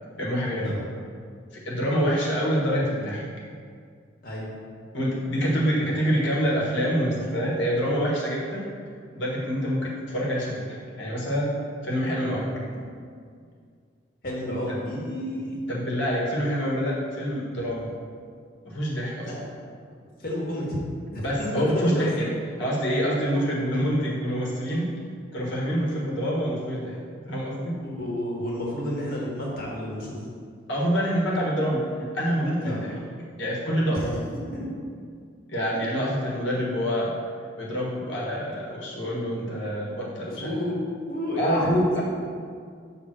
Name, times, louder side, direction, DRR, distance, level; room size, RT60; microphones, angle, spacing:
voice 1, 0.1-0.8 1.5-3.2 4.9-8.7 9.1-11.5 11.8-12.6 15.7-17.9 18.6-19.3 21.2-22.3 22.6-24.9 25.3-27.7 30.7-33.0 33.4-34.2 35.5-37.1 37.6-40.5 41.4-42.0, equal, 70° left, -5 dB, 1.4 m, -26 dB
voice 2, 14.2-15.6 19.2-19.5 20.2-20.8 21.1-21.5 21.7-22.1 27.8-30.2 32.6-32.8 33.9-34.0 34.5-34.7 40.3-40.7 41.1-41.8, left 1 dB, 50° left, -4 dB, 1.5 m, -30 dB
6.2 x 3.6 x 6.0 m, 2.2 s
head